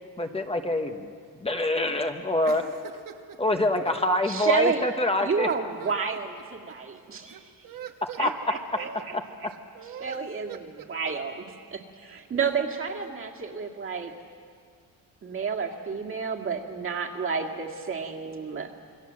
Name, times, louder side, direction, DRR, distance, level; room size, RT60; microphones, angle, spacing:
voice 1, 0.2-1.1 1.4-2.6 3.4-5.5 8.2-8.3, left 1 dB, 15° left, 5 dB, 1.0 m, -25 dB
voice 2, 2.4-3.4 5.5-6.2 6.7-6.8 7.2-8.2 8.7-9.1 9.5-10.2 10.5-10.9, right 8 dB, 60° right, 4 dB, 1.5 m, -42 dB
voice 3, 4.3-4.9 5.2-7.4 8.2-9.2 10.0-10.6 10.9-11.4 11.7-14.1 15.2-18.7, right 5 dB, 35° right, 2 dB, 2.1 m, -30 dB
27.5 x 22.5 x 7.5 m, 2.1 s
cardioid pair, 175°, 37 cm